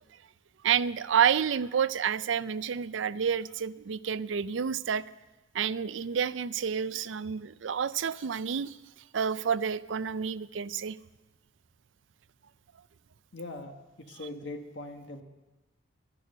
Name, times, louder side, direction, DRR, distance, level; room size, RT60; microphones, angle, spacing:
voice 1, 0.6-5.0 5.5-8.8 9.1-11.0, right 7 dB, 80° right, 17 dB, 0.4 m, -29 dB
voice 2, 13.3-15.2, left 2 dB, 70° left, 4 dB, 1.6 m, -41 dB
12.0 x 11.0 x 6.8 m, 1.2 s
head